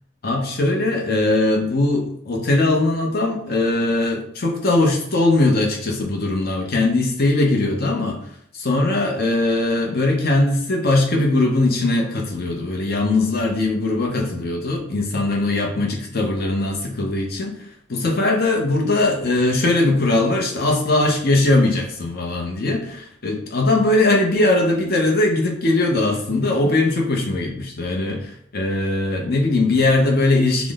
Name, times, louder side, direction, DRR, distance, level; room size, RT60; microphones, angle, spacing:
voice 1, 0.2-8.2 8.5-17.6 17.9-30.7, left 2 dB, 50° left, 1 dB, 0.7 m, -20 dB
3.5 x 2.1 x 3.5 m, 0.66 s
head